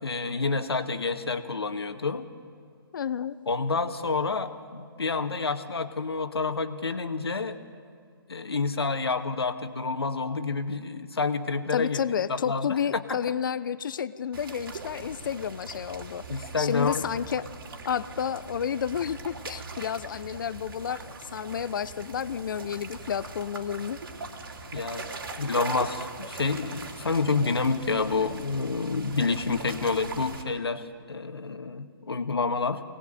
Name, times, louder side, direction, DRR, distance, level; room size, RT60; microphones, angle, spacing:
voice 1, 0.0-2.3 3.5-7.6 8.3-12.0 12.3-13.2 16.3-17.0 24.7-25.1 25.4-32.8, left 4 dB, 80° left, 7 dB, 1.9 m, -28 dB
voice 2, 2.9-3.4 11.7-17.5 17.8-24.0, left 8 dB, 55° left, 16 dB, 0.9 m, -31 dB
sound 1, 14.3-30.4, right 3 dB, 65° right, 3.4 m, -41 dB
25.0 x 19.0 x 9.3 m, 2.2 s
hypercardioid pair, 145°, 13 cm